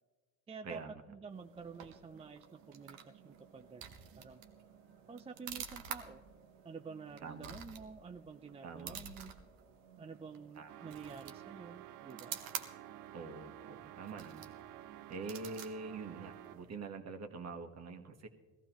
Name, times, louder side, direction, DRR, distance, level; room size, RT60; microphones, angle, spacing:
voice 1, 0.5-0.8 1.1-3.8 4.2-4.4 5.1-6.2 6.6-9.3 10.0-12.4, right 5 dB, 20° right, 8 dB, 0.4 m, -50 dB
sound 1, 1.3-16.8, right 8 dB, 85° right, 1.0 m, -50 dB
voice 2, 7.2-7.5 8.6-9.0 10.6-10.9 13.1-14.6 15.1-18.3, right 4 dB, 50° right, 5 dB, 1.4 m, -45 dB
sound 2, 10.7-16.8, right 13 dB, 65° right, 0.5 m, -52 dB
18.5 x 14.0 x 3.0 m, 1.4 s
supercardioid pair, 75°, 34 cm